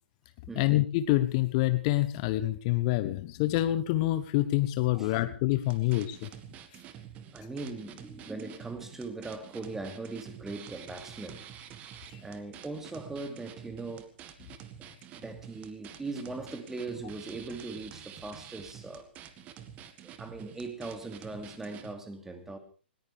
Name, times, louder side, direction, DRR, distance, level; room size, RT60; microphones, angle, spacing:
voice 1, 0.6-6.3 12.1-12.2, left 16 dB, 35° left, 1.0 m, -27 dB
voice 2, 4.9-5.2 5.9-6.0 7.3-11.5 12.2-14.1 15.1-19.1 20.0-22.6, right 3 dB, 5° right, 2.6 m, -40 dB
sound 1, 5.6-21.9, right 9 dB, 25° right, 1.8 m, -48 dB
20.0 x 19.5 x 3.5 m
figure-of-eight pair, 120°, 6 cm